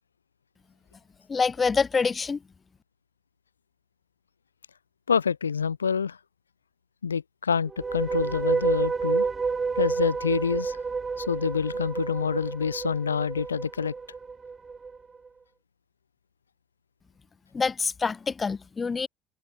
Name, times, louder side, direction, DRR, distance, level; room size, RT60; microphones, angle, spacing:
voice 1, 1.3-2.4 17.5-19.1, left 5 dB, 30° left, 1.2 m, -26 dB
voice 2, 5.1-6.2 7.0-9.3 9.7-10.8 11.2-13.9, left 6 dB, 85° left, 1.5 m, -27 dB
sound 1, 7.7-15.0, right 4 dB, 30° right, 4.5 m, -29 dB
figure-of-eight pair, 55°, 0 cm